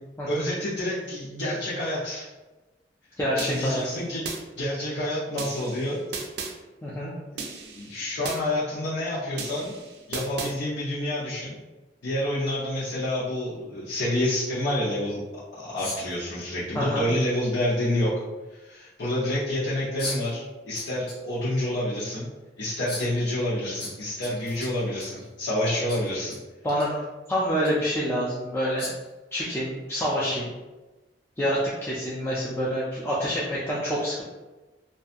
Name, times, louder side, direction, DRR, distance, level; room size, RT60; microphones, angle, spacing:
voice 1, 0.3-2.3 3.3-4.2 4.6-6.0 7.3-7.4 7.7-9.7 10.1-11.6 12.0-15.2 15.5-18.1 18.5-22.3 22.6-26.3, left 1 dB, 85° left, -9 dB, 0.7 m, -28 dB
voice 2, 3.2-4.1 6.8-7.1 16.7-17.1 26.6-27.0 27.3-28.9 29.3-30.5 31.4-34.2, equal, 15° left, -7 dB, 0.3 m, -27 dB
sound 1, 3.4-4.4 5.4-6.5 7.4-8.4 9.4-10.5, right 4 dB, 65° right, 0.4 m, -36 dB
sound 2, 15.8-16.2 17.7-17.8 20.0-20.3 20.7-21.2 21.6-21.7 22.9-23.1 23.8-25.3 25.9-26.4 26.7-26.9 27.6-27.7 28.8-29.1, left 2 dB, 60° left, 1.1 m, -36 dB
2.6 x 2.2 x 2.5 m, 1.1 s
head